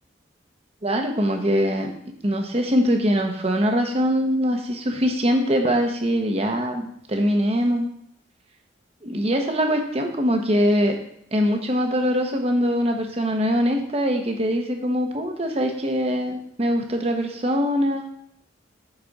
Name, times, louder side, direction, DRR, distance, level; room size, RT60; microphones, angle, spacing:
voice 1, 0.8-1.9 2.2-7.8 9.0-11.0 11.3-18.1, equal, 35° right, 4 dB, 1.0 m, -22 dB
8.1 x 4.3 x 5.3 m, 0.71 s
head